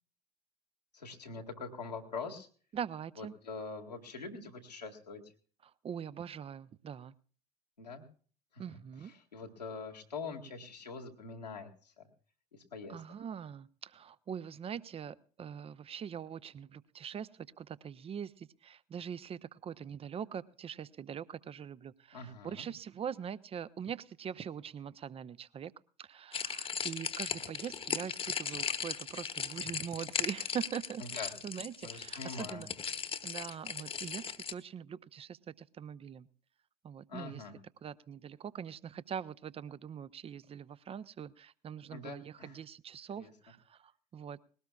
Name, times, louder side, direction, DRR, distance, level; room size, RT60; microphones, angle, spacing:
voice 1, 0.9-2.5 3.2-5.2 7.8-8.0 8.5-8.6 9.0-12.1 12.5-13.0 22.1-22.7 31.0-31.3 31.8-32.6 37.1-37.5 41.9-42.6 43.2-43.3, left 4 dB, 85° left, 1 dB, 2.0 m, -44 dB
voice 2, 2.7-3.3 5.6-7.1 8.6-9.1 12.9-25.7 26.0-32.7 33.2-36.3 36.8-37.4 37.8-44.4, right 8 dB, 30° right, 18 dB, 0.7 m, -43 dB
sound 1, 26.3-34.5, left 6 dB, 25° left, 1.2 m, -37 dB
20.5 x 17.5 x 2.4 m, 0.42 s
figure-of-eight pair, 65°, 21 cm